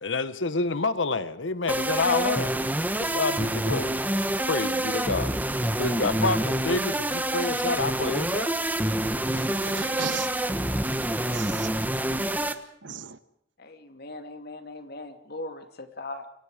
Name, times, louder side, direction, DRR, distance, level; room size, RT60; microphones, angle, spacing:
voice 1, 0.0-2.6 2.9-4.0 4.4-5.3 5.7-8.6, left 3 dB, 75° left, 1.2 m, -28 dB
sound 1, 1.7-12.5, right 1 dB, 10° right, 1.3 m, -27 dB
voice 2, 9.2-10.3 11.2-11.9 12.8-13.2, right 6 dB, 70° right, 1.2 m, -37 dB
voice 3, 13.6-16.3, left 2 dB, 55° left, 2.7 m, -39 dB
29.0 x 24.0 x 5.1 m
head